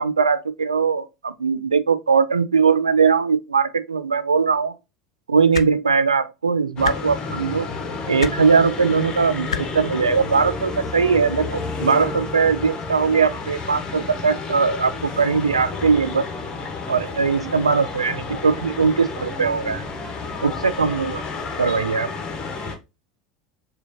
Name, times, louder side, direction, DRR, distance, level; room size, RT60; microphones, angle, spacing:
voice 1, 0.0-4.7 5.3-7.7 8.1-16.2 16.9-19.8 20.4-21.2 21.6-22.1, right 5 dB, 85° right, 0.4 m, -20 dB
sound 1, 5.5-5.7 6.8-7.0 8.2-8.3 9.5-9.6 10.9-11.0, left 7 dB, 80° left, 0.3 m, -26 dB
sound 2, 6.8-22.8, left 3 dB, 30° left, 1.0 m, -31 dB
6.3 x 2.4 x 2.8 m
figure-of-eight pair, 75°, 3 cm